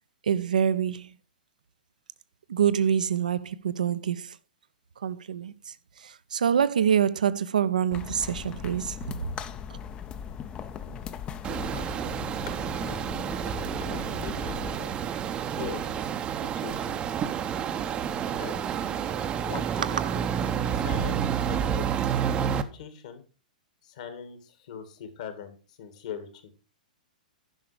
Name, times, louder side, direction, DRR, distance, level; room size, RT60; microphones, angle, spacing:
voice 1, 0.2-1.1 2.5-4.4 5.0-9.3 9.7-9.8 10.9-11.0 19.8-20.1, right 8 dB, 65° right, 0.6 m, -26 dB
sound 1, 7.9-14.8, left 8 dB, 20° left, 0.6 m, -39 dB
sound 2, 11.4-22.6, right 8 dB, 20° right, 0.7 m, -29 dB
voice 2, 11.5-12.0 12.5-12.6 12.9-13.2 13.4-15.0 15.5-16.9 17.8-18.0 18.4-18.7 19.4-20.3 20.7-23.2 23.8-26.3, left 8 dB, 55° left, 1.9 m, -42 dB
10.5 x 5.8 x 4.8 m
figure-of-eight pair, 110°, 5 cm